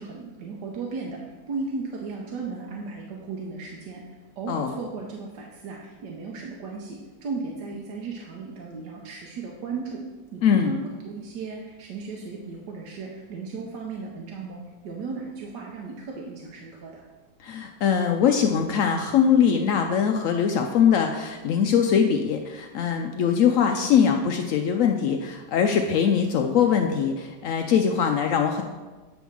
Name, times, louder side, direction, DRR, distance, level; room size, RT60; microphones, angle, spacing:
voice 1, 0.0-10.0 10.3-17.1, right 4 dB, 70° right, -1 dB, 1.4 m, -36 dB
voice 2, 17.4-28.6, left 7 dB, 90° left, 4 dB, 0.7 m, -22 dB
8.3 x 3.5 x 6.1 m, 1.3 s
omnidirectional pair, 1.9 m